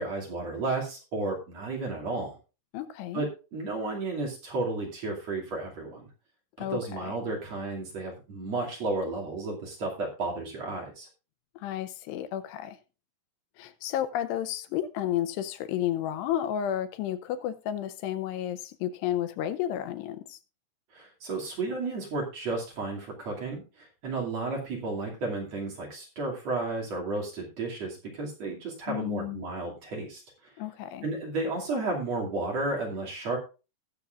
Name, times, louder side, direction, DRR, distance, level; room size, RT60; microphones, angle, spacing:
voice 1, 0.0-2.3 3.1-6.1 6.7-11.1 20.9-30.2 31.0-33.4, right 3 dB, 45° right, 3.3 m, -33 dB
voice 2, 2.7-3.3 6.6-7.2 11.6-12.8 13.6-20.4 28.9-29.4 30.6-31.1, left 11 dB, 85° left, 2.9 m, -32 dB
20.0 x 7.0 x 2.5 m
omnidirectional pair, 4.8 m